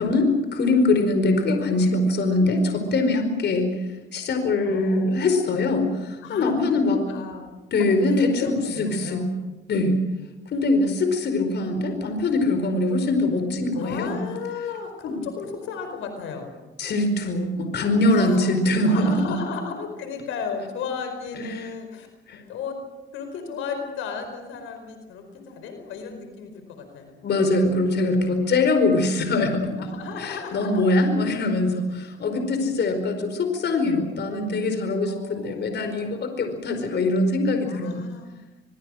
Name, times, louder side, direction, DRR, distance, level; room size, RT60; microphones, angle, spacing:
voice 1, 0.0-3.7 4.1-7.0 7.7-9.3 9.7-10.0 10.5-14.3 15.0-15.2 16.8-19.4 21.4-21.7 22.3-22.4 27.2-29.9 30.2-38.1, left 2 dB, 60° left, 7 dB, 4.8 m, -23 dB
voice 2, 4.6-5.0 6.2-6.5 6.8-7.5 7.8-9.3 13.7-16.5 18.0-18.5 18.8-22.1 22.5-22.8 23.1-27.1 29.8-31.0 35.1-36.1 37.7-38.4, left 5 dB, 90° left, 6 dB, 4.8 m, -34 dB
24.0 x 23.5 x 6.4 m, 1.1 s
cardioid pair, 90°, 20 cm